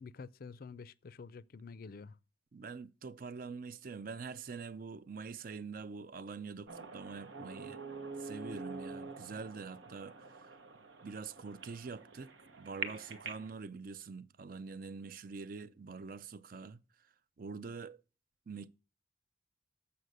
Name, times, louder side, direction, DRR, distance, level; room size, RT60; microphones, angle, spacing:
voice 1, 0.0-2.2, left 4 dB, 50° left, 0.4 m, -49 dB
voice 2, 2.5-7.8 8.2-10.6 11.0-12.3 12.6-16.8 17.4-18.0 18.5-18.7, right 4 dB, 50° right, 0.4 m, -45 dB
sound 1, 6.7-13.5, right 4 dB, 90° right, 1.1 m, -46 dB
7.7 x 5.7 x 6.6 m
head